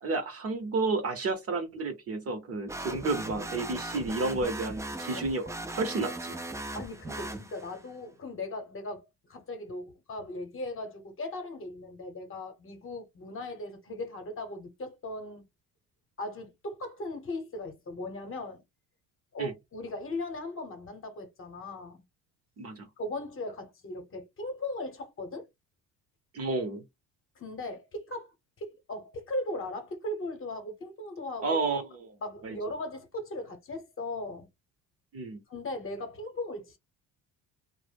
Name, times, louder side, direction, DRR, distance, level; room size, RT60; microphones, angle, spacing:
voice 1, 0.0-5.5 5.7-6.3 19.4-19.5 22.6-22.9 26.3-26.8 31.4-32.1 32.4-32.6 35.1-35.4, right 3 dB, 40° right, 0.7 m, -31 dB
sound 1, 2.7-7.9, right 2 dB, 10° right, 0.3 m, -38 dB
voice 2, 6.5-15.5 16.2-18.6 19.3-22.0 23.0-25.5 27.4-31.6 32.2-34.5 35.5-36.8, left 1 dB, 35° left, 0.9 m, -38 dB
2.1 x 2.0 x 3.3 m
supercardioid pair, 90°, 37 cm